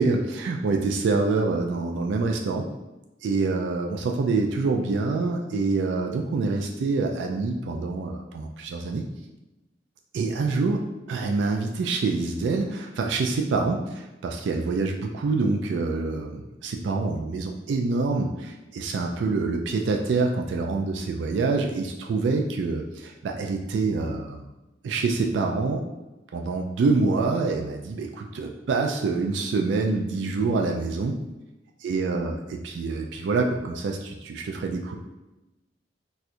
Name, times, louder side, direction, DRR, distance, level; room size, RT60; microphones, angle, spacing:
voice 1, 0.0-2.7 3.2-9.1 10.1-10.8 11.1-24.5 24.8-25.8 26.3-31.2 31.8-35.0, right 3 dB, 75° right, 2 dB, 0.3 m, -26 dB
4.2 x 2.3 x 2.5 m, 1.0 s
head